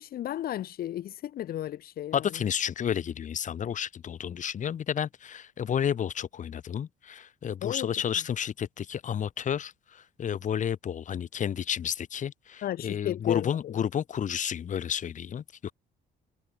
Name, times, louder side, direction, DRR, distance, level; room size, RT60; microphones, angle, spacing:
voice 1, 0.0-2.3 7.6-7.9 12.6-13.8, left 12 dB, 65° left, 2.8 m, -34 dB
voice 2, 2.1-15.7, left 8 dB, 45° left, 4.7 m, -31 dB
cardioid pair, 110°, 17 cm